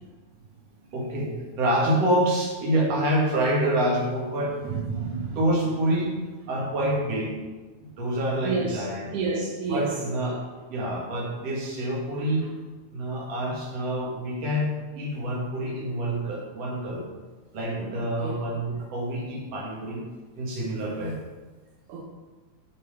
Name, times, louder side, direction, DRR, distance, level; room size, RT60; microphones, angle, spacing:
voice 1, 0.9-4.6 5.0-6.2 6.4-7.3 8.0-9.1 9.7-12.5 12.9-17.0 17.5-20.0 20.3-21.2, right 1 dB, 50° right, -3 dB, 2.5 m, -27 dB
voice 2, 4.7-5.4 8.4-8.9 9.1-9.9 11.5-11.6 18.2-18.4 21.9-22.0, right 4 dB, 75° right, -1 dB, 1.9 m, -29 dB
7.9 x 5.4 x 5.0 m, 1.3 s
omnidirectional pair, 4.0 m